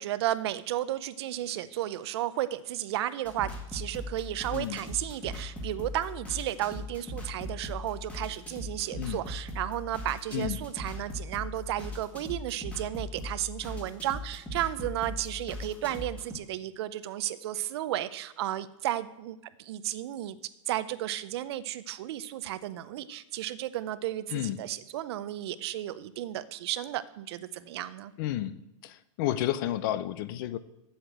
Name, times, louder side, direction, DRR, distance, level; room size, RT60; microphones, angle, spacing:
voice 1, 0.0-20.4 20.7-28.1, right 13 dB, 50° right, 15 dB, 0.6 m, -33 dB
sound 1, 3.2-16.3, left 1 dB, 5° left, 1.6 m, -40 dB
voice 2, 28.2-28.5 28.8-30.6, left 13 dB, 40° left, 16 dB, 0.5 m, -31 dB
8.0 x 8.0 x 7.8 m, 0.87 s
supercardioid pair, 160°, 17 cm